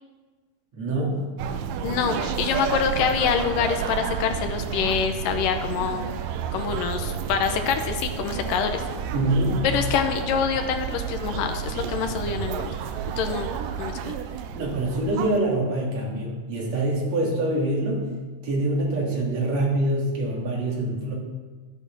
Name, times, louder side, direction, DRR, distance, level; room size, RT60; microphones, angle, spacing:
voice 1, 0.7-1.2 9.1-9.6 14.6-18.1 18.4-21.1, right 1 dB, 45° right, -3 dB, 3.6 m, -25 dB
sound 1, 1.4-15.4, right 8 dB, 85° right, 1.9 m, -31 dB
voice 2, 1.8-6.1 6.5-8.8 9.7-12.7 13.2-14.2, left 7 dB, 75° left, 6 dB, 2.2 m, -26 dB
12.0 x 9.3 x 6.2 m, 1.4 s
omnidirectional pair, 4.6 m